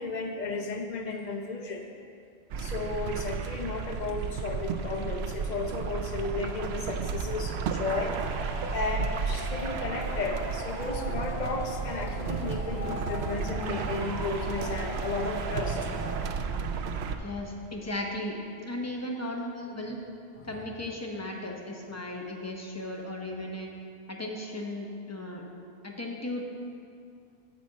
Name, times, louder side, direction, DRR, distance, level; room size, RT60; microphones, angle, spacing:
voice 1, 0.0-1.8 2.6-8.2 8.7-15.9 20.4-20.5, left 3 dB, 50° left, 2 dB, 0.9 m, -34 dB
sound 1, 2.5-17.2, right 5 dB, 90° right, 0.8 m, -33 dB
Male speech man speaking / Shout / Clapping, 7.8-16.2, equal, ahead, 1.9 m, -40 dB
voice 2, 17.2-20.0 20.4-23.7 24.1-25.4 25.8-26.4, left 1 dB, 15° left, 0 dB, 0.9 m, -36 dB
9.9 x 4.3 x 7.3 m, 2.4 s
omnidirectional pair, 1.0 m